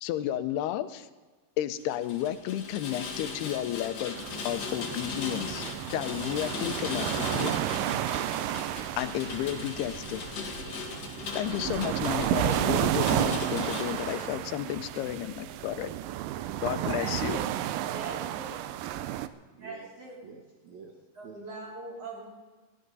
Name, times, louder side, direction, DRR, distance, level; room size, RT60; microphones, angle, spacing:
voice 1, 0.0-1.1 1.6-5.7 5.9-7.5 9.0-10.2 11.3-15.9 16.6-17.4, left 12 dB, 85° left, 11 dB, 2.7 m, -32 dB
Rain, 1.9-14.2, left 4 dB, 50° left, 2.4 m, -38 dB
sound 1, 4.2-19.3, right 12 dB, 85° right, 1.9 m, -32 dB
voice 2, 13.7-16.8 18.1-18.4 18.7-19.3 19.5-19.9 20.2-21.4, right 5 dB, 60° right, 1 dB, 2.0 m, -49 dB
voice 3, 16.8-17.5 17.9-18.6 19.6-20.2 21.1-22.3, right 3 dB, 40° right, -4 dB, 4.9 m, -41 dB
21.0 x 14.0 x 4.0 m, 1.3 s
omnidirectional pair, 4.6 m